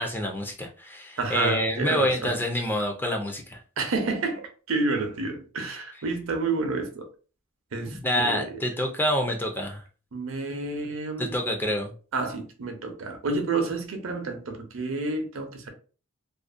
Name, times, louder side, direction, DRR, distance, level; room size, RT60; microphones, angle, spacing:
voice 1, 0.0-3.6 7.9-9.8 11.2-11.9, left 1 dB, 10° left, 0.3 m, -27 dB
voice 2, 1.2-2.4 3.8-7.0 7.7-8.5 10.1-11.3 12.1-15.7, right 3 dB, 70° right, 0.6 m, -29 dB
2.4 x 2.0 x 2.4 m
head